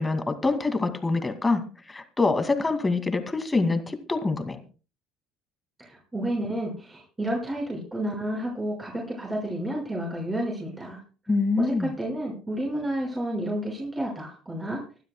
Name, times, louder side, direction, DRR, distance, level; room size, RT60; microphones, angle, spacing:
voice 1, 0.0-4.6 11.3-11.9, left 3 dB, 15° left, 8 dB, 2.4 m, -25 dB
voice 2, 5.8-11.0 11.6-14.8, right 1 dB, 15° right, -2 dB, 5.8 m, -31 dB
25.0 x 12.0 x 2.3 m, 0.34 s
hypercardioid pair, 65°, 0 cm